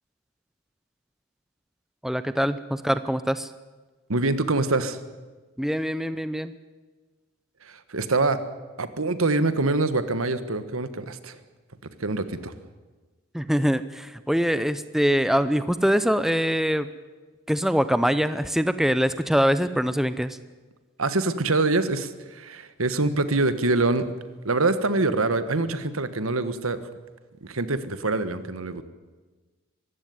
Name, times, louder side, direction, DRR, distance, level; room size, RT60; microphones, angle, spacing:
voice 1, 2.0-3.5 5.6-6.5 13.3-16.9 17.5-20.4, equal, ahead, 13 dB, 0.6 m, -23 dB
voice 2, 4.1-5.0 7.6-8.4 8.8-11.4 12.0-12.5 21.0-24.1 24.4-26.8 27.4-28.8, right 3 dB, 85° right, 12 dB, 1.5 m, -25 dB
24.0 x 15.0 x 9.5 m, 1.3 s
head